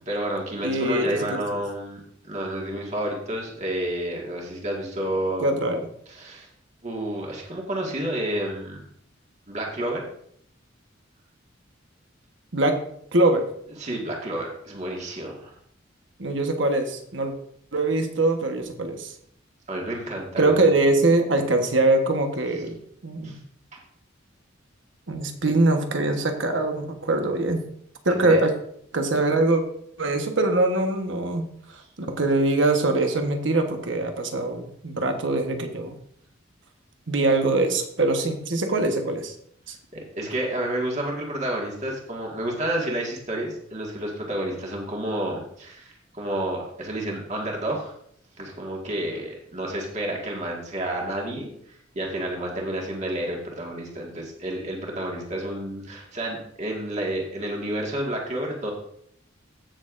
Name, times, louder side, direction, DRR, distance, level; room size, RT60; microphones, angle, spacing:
voice 1, 0.1-5.5 6.1-6.5 6.8-8.8 9.5-10.0 13.8-15.5 19.7-20.6 23.2-23.4 28.1-28.4 39.9-47.9 48.4-58.7, right 1 dB, 35° right, -1 dB, 1.8 m, -30 dB
voice 2, 0.6-1.4 5.4-5.9 12.5-12.8 13.1-13.4 16.2-17.3 17.7-19.1 20.4-23.3 25.1-27.6 28.0-28.5 28.9-29.6 30.0-36.0 37.1-39.3 39.7-39.8, right 2 dB, 65° right, 5 dB, 1.2 m, -23 dB
15.5 x 6.5 x 2.6 m, 0.67 s
head